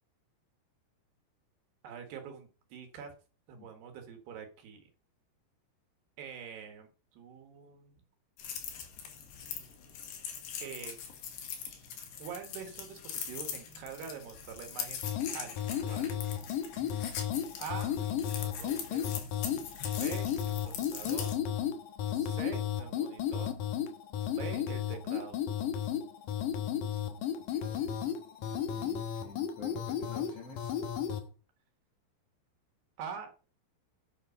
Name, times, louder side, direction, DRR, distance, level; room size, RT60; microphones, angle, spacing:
voice 1, 1.8-3.1 3.5-4.9 6.2-8.0 10.6-11.0 12.2-15.0 15.3-16.2 17.6-18.0 18.4-19.1 19.9-21.3 22.1-23.5 24.2-25.4 33.0-33.5, right 7 dB, 65° right, 5 dB, 3.3 m, -45 dB
sound 1, 8.4-21.4, left 8 dB, 65° left, 3.7 m, -42 dB
sound 2, 15.0-31.2, left 9 dB, 85° left, 1.9 m, -34 dB
voice 2, 16.8-17.1 27.6-27.9 28.4-30.7, left 3 dB, 50° left, -1 dB, 2.0 m, -50 dB
9.6 x 7.5 x 5.3 m, 0.36 s
omnidirectional pair, 5.5 m